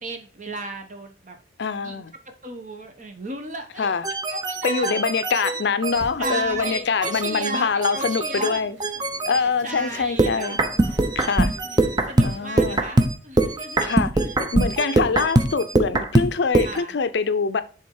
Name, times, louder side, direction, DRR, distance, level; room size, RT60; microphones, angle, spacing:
voice 1, 0.0-1.4 1.8-2.0 2.4-4.0 4.3-5.1 6.2-8.6 9.3-10.6 11.0-11.1 11.6-13.9 16.6-17.0, right 2 dB, 40° right, 1.1 m, -35 dB
voice 2, 1.6-2.1 3.8-4.0 4.6-8.8 9.3-10.6 11.2-11.5 12.2-12.8 13.8-17.6, left 5 dB, 65° left, 0.5 m, -24 dB
sound 1, 4.0-9.4 10.2-16.8, right 2 dB, 20° right, 0.6 m, -23 dB
sound 2, 5.9-12.8, equal, 70° right, 2.2 m, -46 dB
7.0 x 3.7 x 4.7 m
head